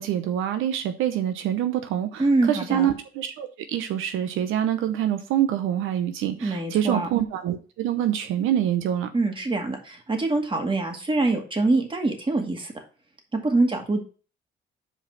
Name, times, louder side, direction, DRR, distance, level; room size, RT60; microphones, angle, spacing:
voice 1, 0.0-9.1, right 10 dB, 85° right, 8 dB, 0.8 m, -26 dB
voice 2, 2.2-2.9 6.4-7.1 9.1-12.7 13.3-14.0, right 2 dB, 25° right, 3 dB, 2.1 m, -24 dB
5.6 x 4.9 x 6.0 m, 0.37 s
cardioid pair, 90°, 20 cm